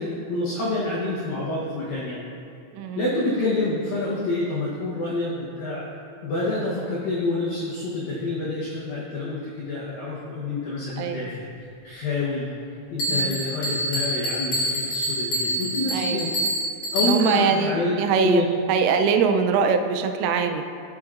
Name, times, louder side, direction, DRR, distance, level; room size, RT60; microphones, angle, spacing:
voice 1, 0.0-2.2 3.0-5.9 6.2-11.5 11.8-12.5 12.9-16.3 16.9-18.5, left 2 dB, 90° left, -6 dB, 2.0 m, -27 dB
voice 2, 2.7-3.1 11.0-11.3 13.1-13.4 15.9-16.4 17.0-20.6, right 5 dB, 90° right, 6 dB, 3.2 m, -23 dB
Bell, 13.0-17.5, right 1 dB, 55° left, 2.0 m, -26 dB
15.0 x 6.2 x 2.5 m, 2.5 s
omnidirectional pair, 5.7 m